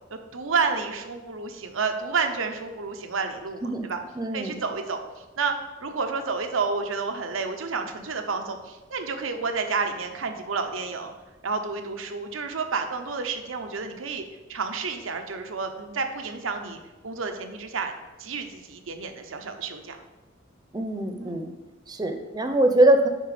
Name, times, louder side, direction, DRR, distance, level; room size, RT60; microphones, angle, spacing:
voice 1, 0.1-4.0 4.3-5.5 5.8-11.1 11.4-14.2 14.5-16.8 17.0-17.9 18.2-20.0 21.2-21.4, right 4 dB, 90° right, 6 dB, 0.9 m, -30 dB
voice 2, 4.2-4.6 20.7-21.5 21.9-23.1, right 1 dB, 20° right, 7 dB, 0.7 m, -22 dB
10.0 x 4.1 x 5.0 m, 1.1 s
head